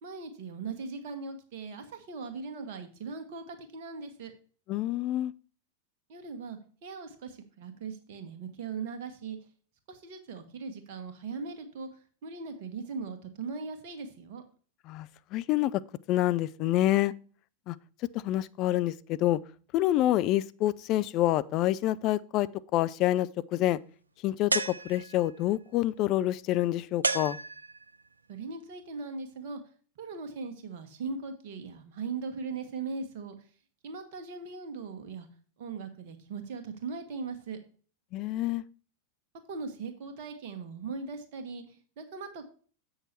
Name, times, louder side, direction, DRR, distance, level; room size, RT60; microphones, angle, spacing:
voice 1, 0.0-4.3 6.1-9.4 9.9-14.4 28.3-29.6 30.0-33.3 33.8-35.3 35.6-37.6 39.5-42.5, right 4 dB, 50° right, 1.5 m, -39 dB
voice 2, 4.7-5.3 14.9-15.8 16.1-17.1 17.7-17.8 18.1-19.4 19.7-23.8 24.2-27.4 38.1-38.6, left 14 dB, 40° left, 0.4 m, -27 dB
sound 1, 24.5-25.4 27.0-28.0, right 3 dB, 80° right, 0.4 m, -31 dB
7.9 x 6.3 x 4.4 m
figure-of-eight pair, 90°, 0 cm